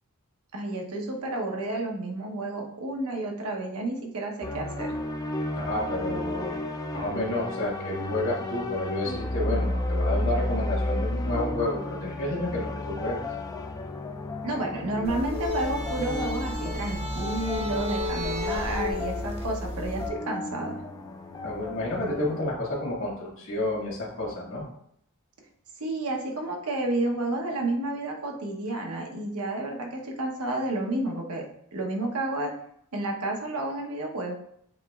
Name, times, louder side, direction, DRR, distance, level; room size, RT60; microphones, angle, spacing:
voice 1, 0.5-5.0 14.4-20.8 25.8-31.4 31.7-32.5 32.9-34.3, right 2 dB, 85° right, 1 dB, 1.0 m, -31 dB
sound 1, 4.4-22.4, left 2 dB, 15° left, 0.3 m, -33 dB
voice 2, 5.5-6.6 6.9-13.2 21.4-24.6, left 1 dB, 60° left, -3 dB, 1.8 m, -30 dB
sound 2, 15.0-20.1, left 1 dB, 30° right, 0.8 m, -32 dB
7.3 x 3.0 x 2.4 m, 0.71 s
head